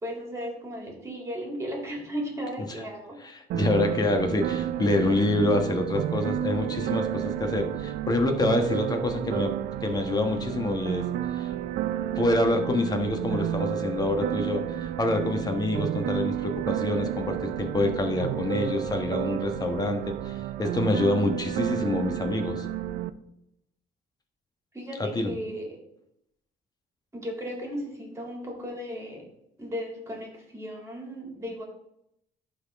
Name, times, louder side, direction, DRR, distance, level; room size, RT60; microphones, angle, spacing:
voice 1, 0.0-3.2 24.7-25.8 27.1-29.2 29.6-31.6, equal, 15° right, -1 dB, 2.8 m, -35 dB
voice 2, 3.2-9.5 9.8-11.0 11.3-11.5 12.2-22.7 25.0-25.3, left 2 dB, 25° left, 5 dB, 1.3 m, -26 dB
sound 1, 3.5-23.1, right 12 dB, 70° right, 0.5 m, -31 dB
11.0 x 4.0 x 3.5 m, 0.79 s
cardioid pair, 110°, 17 cm